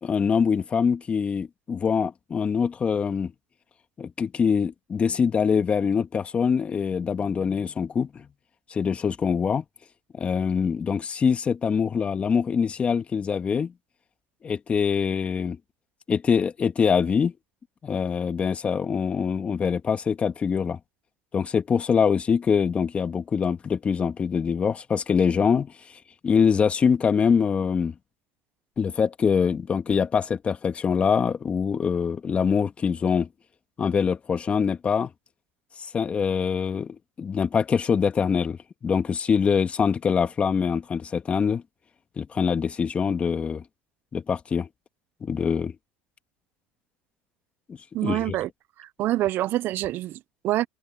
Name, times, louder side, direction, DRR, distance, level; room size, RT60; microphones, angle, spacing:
voice 1, 0.0-3.3 4.0-8.3 8.7-9.6 10.1-13.7 14.4-15.6 16.1-17.3 17.8-20.8 21.3-25.7 26.2-28.0 28.8-33.3 33.8-35.1 35.9-41.6 42.2-43.6 44.1-44.7 45.2-45.7 47.7-48.4, left 6 dB, 30° left, 2.2 m, -24 dB
voice 2, 47.9-48.5 48.8-50.7, right 15 dB, 55° right, 0.7 m, -26 dB
supercardioid pair, 105°, 4 cm